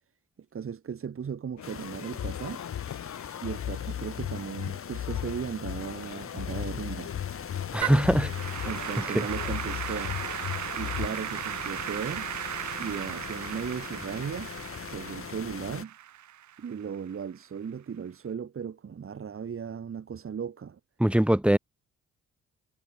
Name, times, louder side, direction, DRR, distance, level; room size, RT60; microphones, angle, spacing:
voice 1, 0.5-2.6 3.4-7.1 8.6-10.2 10.7-12.3 12.7-14.5 14.9-15.9 16.6-20.8, right 7 dB, 45° right, 3.7 m, -36 dB
sound 1, 1.6-11.1, left 10 dB, 65° left, 4.5 m, -36 dB
sound 2, 1.6-15.8, left 7 dB, 45° left, 5.9 m, -41 dB
voice 2, 7.7-8.3 9.1-9.3 21.0-21.6, right 1 dB, 5° right, 1.2 m, -22 dB
Applause / Keyboard (musical), 7.8-17.1, right 11 dB, 70° right, 4.5 m, -37 dB
cardioid pair, 90°, 30 cm